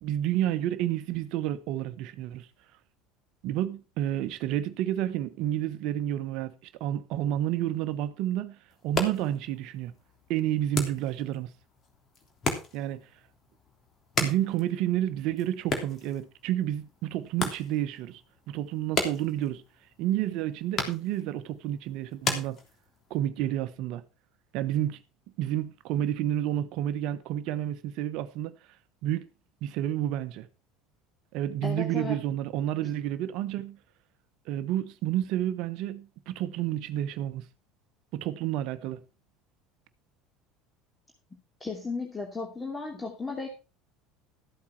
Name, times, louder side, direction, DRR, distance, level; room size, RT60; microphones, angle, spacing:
voice 1, 0.0-2.5 3.4-6.5 6.8-8.6 8.8-9.9 10.3-11.5 12.7-13.0 14.2-18.2 18.5-19.6 20.0-22.6 23.1-24.0 24.5-25.0 25.4-28.5 29.0-29.2 29.6-30.5 31.3-33.8 34.5-37.4 38.1-39.0, right 12 dB, 55° right, 1.0 m, -30 dB
sound 1, 8.7-23.2, left 3 dB, 35° left, 3.3 m, -37 dB
voice 2, 31.6-32.2 41.6-43.5, left 3 dB, 20° left, 2.8 m, -34 dB
13.5 x 8.4 x 4.5 m
figure-of-eight pair, 65°, 0 cm